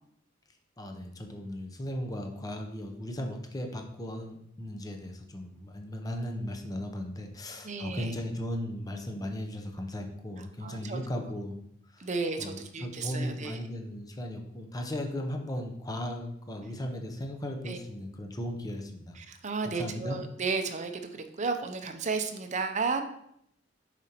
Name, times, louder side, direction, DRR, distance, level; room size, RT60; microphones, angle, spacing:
voice 1, 0.8-11.6 11.9-12.1 12.4-19.2 19.6-20.2, left 1 dB, 20° left, 4 dB, 0.7 m, -37 dB
voice 2, 7.6-8.2 10.4-11.3 12.0-13.6 17.6-17.8 19.2-23.0, right 4 dB, 40° right, 7 dB, 0.6 m, -33 dB
6.8 x 5.1 x 2.9 m, 0.72 s
head